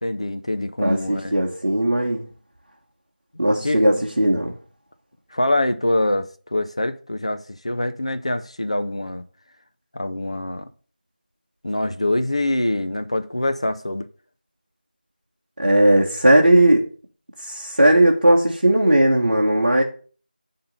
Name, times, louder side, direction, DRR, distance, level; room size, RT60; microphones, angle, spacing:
voice 1, 0.0-1.3 3.6-3.8 5.3-9.2 9.9-10.7 11.6-14.1, left 1 dB, 35° left, 0.6 m, -24 dB
voice 2, 0.8-2.3 3.4-4.5 15.6-16.8 17.4-19.8, right 1 dB, 45° right, 1.4 m, -17 dB
10.5 x 3.9 x 6.7 m
figure-of-eight pair, 170°, 5 cm